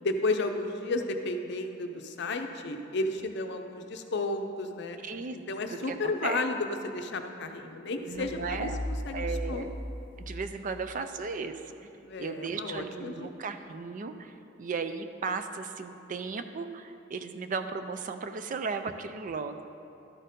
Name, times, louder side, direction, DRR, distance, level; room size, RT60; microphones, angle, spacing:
voice 1, 0.0-5.0 5.3-9.7 12.0-13.3, left 2 dB, 60° left, 6 dB, 0.6 m, -33 dB
voice 2, 5.0-5.4 5.9-6.4 8.1-8.8 9.1-9.8 10.2-11.9 12.2-19.6, right 4 dB, 40° right, 9 dB, 0.4 m, -36 dB
sound 1, 8.1-11.0, left 1 dB, 25° left, 1.2 m, -37 dB
12.5 x 4.4 x 5.2 m, 2.8 s
head